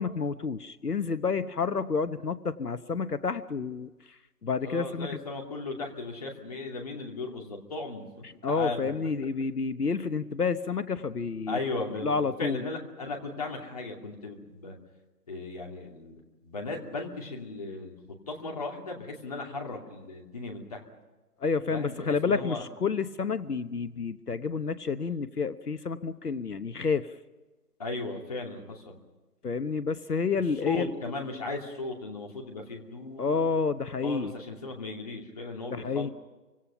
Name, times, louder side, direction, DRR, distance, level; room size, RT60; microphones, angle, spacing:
voice 1, 0.0-3.9 4.4-5.1 8.4-11.6 12.0-12.6 21.4-27.1 29.4-30.9 33.2-34.3 35.7-36.1, left 5 dB, 75° left, 12 dB, 1.1 m, -29 dB
voice 2, 4.6-8.1 8.5-8.9 11.5-14.7 15.3-18.0 18.3-20.8 21.7-22.6 27.8-29.0 30.5-33.4 34.0-36.1, left 3 dB, 25° left, 1 dB, 2.7 m, -36 dB
29.0 x 25.0 x 5.7 m, 1.2 s
figure-of-eight pair, 165°, 47 cm